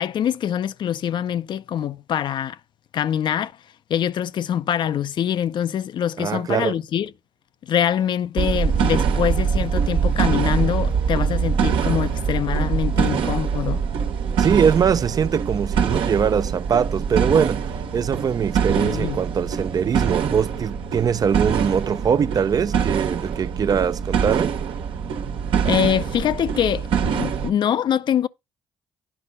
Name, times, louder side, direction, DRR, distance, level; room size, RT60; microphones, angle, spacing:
voice 1, 0.0-2.6 2.9-3.5 3.9-7.1 7.6-13.8 18.8-19.2 25.6-28.3, left 9 dB, 60° left, 0.5 m, -24 dB
voice 2, 6.2-6.8 14.4-17.7 17.9-24.6, right 7 dB, 45° right, 0.5 m, -22 dB
sound 1, 8.4-27.5, right 7 dB, 75° right, 1.4 m, -23 dB
10.0 x 5.1 x 5.5 m
supercardioid pair, 70°, 9 cm